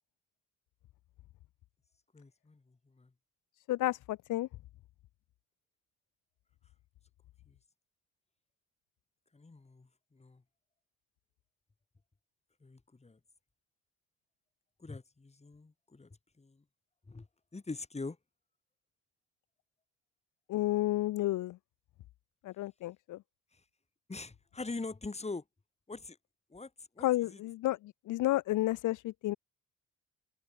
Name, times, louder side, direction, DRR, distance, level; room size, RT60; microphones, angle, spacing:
voice 1, 2.1-3.1 7.5-7.6 9.3-10.4 12.6-13.2 14.8-16.6 17.1-17.3 17.5-18.2 24.1-25.4 25.9-26.2 26.5-26.7 27.0-27.4, left 3 dB, 20° left, 5.2 m, -43 dB
voice 2, 3.7-4.5 20.5-21.6 22.4-23.2 27.0-29.4, left 16 dB, 85° left, 1.3 m, -31 dB
cardioid pair, 90°, 30 cm